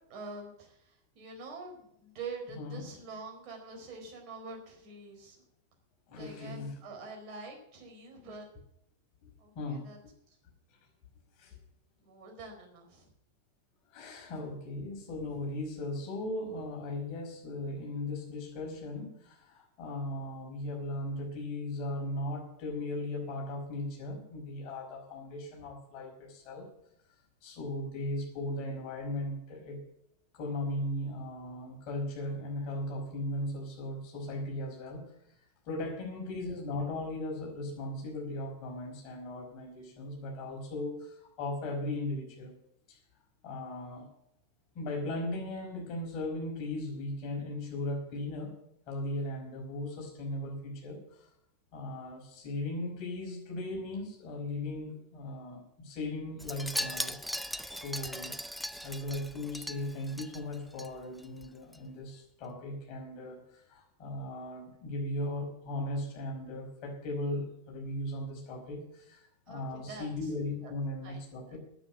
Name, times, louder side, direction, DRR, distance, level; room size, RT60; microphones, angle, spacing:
voice 1, 0.1-5.4 6.1-8.5 9.4-10.0 12.0-13.1 69.5-70.3 70.6-70.7 71.0-71.2 71.5-71.6, right 3 dB, 40° right, 1 dB, 4.4 m, -46 dB
voice 2, 6.1-6.7 9.2-9.3 9.5-9.9 11.4-11.6 13.9-26.7 27.4-29.8 30.3-35.0 35.7-42.5 42.9-43.0 43.4-44.1 44.7-48.5 48.9-51.3 51.7-57.2 57.7-58.4 58.8-71.6, left 1 dB, 40° left, 0 dB, 5.1 m, -37 dB
Wind chime, 56.4-60.9 61.2-61.5 61.7-61.8, equal, ahead, 0.6 m, -38 dB
9.7 x 8.7 x 9.8 m, 0.75 s
figure-of-eight pair, 90°, 0 cm